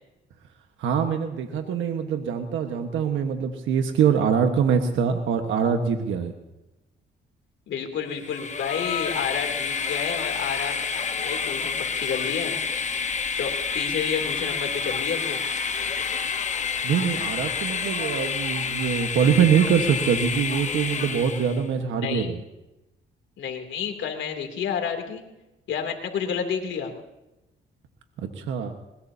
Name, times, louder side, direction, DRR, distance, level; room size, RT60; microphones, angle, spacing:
voice 1, 0.8-6.3 16.8-22.4 28.3-28.7, right 7 dB, 80° right, 5 dB, 1.4 m, -23 dB
voice 2, 7.7-12.6 13.3-15.4 22.0-22.3 23.4-25.2 25.7-26.9, left 7 dB, 70° left, 4 dB, 2.9 m, -30 dB
Train, 8.2-21.7, left 6 dB, 35° left, 1.1 m, -29 dB
21.0 x 21.0 x 2.8 m, 0.98 s
cardioid pair, 90°, 20 cm